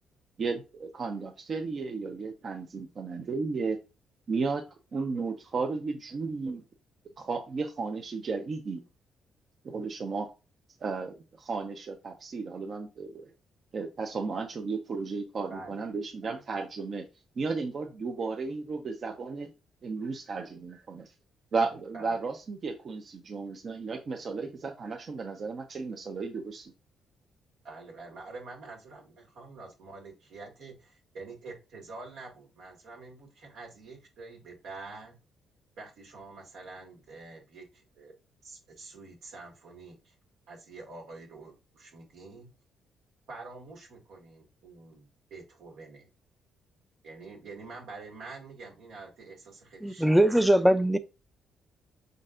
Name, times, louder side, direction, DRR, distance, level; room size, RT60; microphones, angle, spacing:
voice 1, 0.4-3.8 4.3-4.6 4.9-6.6 7.2-8.8 9.6-10.3 10.8-13.3 13.7-17.0 17.4-19.5 19.8-21.1 21.5-26.7, right 4 dB, 50° right, 0.7 m, -34 dB
voice 2, 15.5-15.8 16.2-16.4 21.9-22.2 27.6-35.1 35.8-38.1 38.4-40.1 40.5-42.5 43.3-46.1 47.0-50.2, right 3 dB, 80° right, 1.8 m, -46 dB
voice 3, 49.8-51.0, right 1 dB, ahead, 0.4 m, -21 dB
5.5 x 3.9 x 2.5 m
cardioid pair, 90°, 0 cm